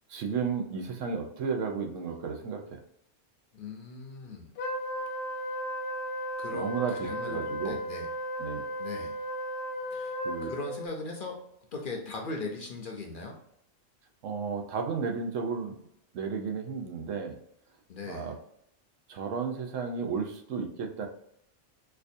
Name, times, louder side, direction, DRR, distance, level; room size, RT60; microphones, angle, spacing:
voice 1, 0.1-2.8 6.5-7.8 8.4-8.6 10.2-10.5 14.2-15.7 16.1-17.4 18.1-18.4 19.1-21.1, right 5 dB, 85° right, 3 dB, 1.0 m, -33 dB
voice 2, 3.5-4.5 6.4-6.7 7.0-8.1 8.8-9.2 9.9-11.4 11.7-13.4 17.9-18.3, left 3 dB, 55° left, 1 dB, 0.7 m, -39 dB
Wind instrument woodwind instrument, 4.6-10.9, equal, 80° left, 1.0 m, -35 dB
4.3 x 2.4 x 2.6 m, 0.72 s
omnidirectional pair, 1.3 m